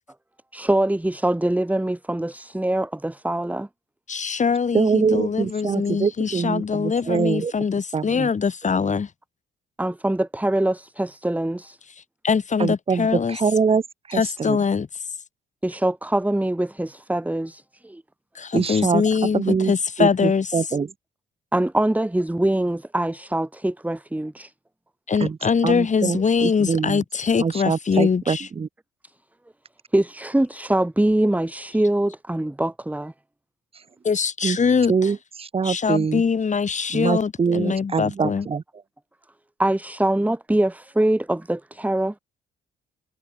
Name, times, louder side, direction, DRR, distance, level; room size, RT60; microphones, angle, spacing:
voice 1, 0.5-3.7 9.8-11.8 15.6-18.0 21.5-24.5 29.9-33.1 39.6-42.2, right 1 dB, 5° right, 2.6 m, -23 dB
voice 2, 4.1-9.1 12.2-13.4 14.1-14.9 18.3-20.5 25.1-28.5 34.0-35.1 35.6-38.5, left 5 dB, 35° left, 2.9 m, -23 dB
voice 3, 4.7-7.5 7.9-8.3 12.6-13.8 14.1-14.6 18.5-19.0 19.3-19.7 20.0-20.9 25.2-25.4 25.6-27.0 27.4-28.7 34.4-34.6 34.9-36.2 36.9-38.6, right 5 dB, 30° right, 0.9 m, -24 dB
cardioid pair, 90°, 20 cm